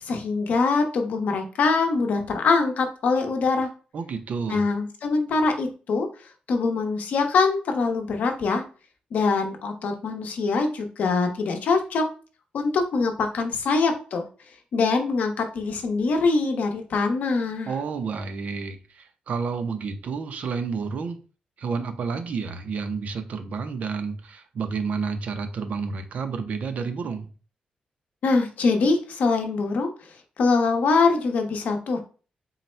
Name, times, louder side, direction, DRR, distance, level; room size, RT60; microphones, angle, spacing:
voice 1, 0.0-3.7 4.5-6.1 6.5-8.6 9.1-12.0 12.5-14.3 14.7-17.7 28.2-29.9 30.4-32.0, left 4 dB, 70° left, 4 dB, 0.7 m, -23 dB
voice 2, 3.9-4.6 17.7-21.2 21.6-27.3, right 5 dB, 60° right, 8 dB, 0.5 m, -30 dB
3.9 x 2.1 x 4.2 m, 0.37 s
wide cardioid pair, 150°, 3 cm